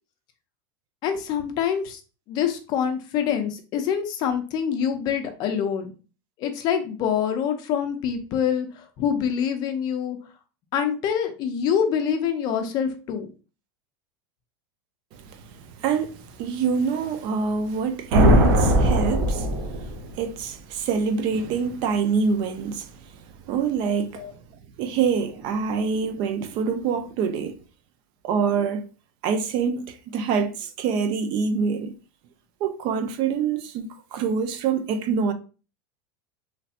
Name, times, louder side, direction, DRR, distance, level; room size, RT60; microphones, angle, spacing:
voice 1, 1.0-2.0 2.3-5.9 6.4-10.2 10.7-13.3 24.1-24.3, left 8 dB, 35° left, 0.5 m, -25 dB
voice 2, 15.1-24.2 24.8-27.6 28.2-28.9 29.2-32.0 32.6-35.3, right 5 dB, 40° right, 0.4 m, -26 dB
sound 1, 18.1-20.2, equal, 70° right, 0.9 m, -19 dB
3.2 x 2.7 x 2.4 m
supercardioid pair, 160°, 12 cm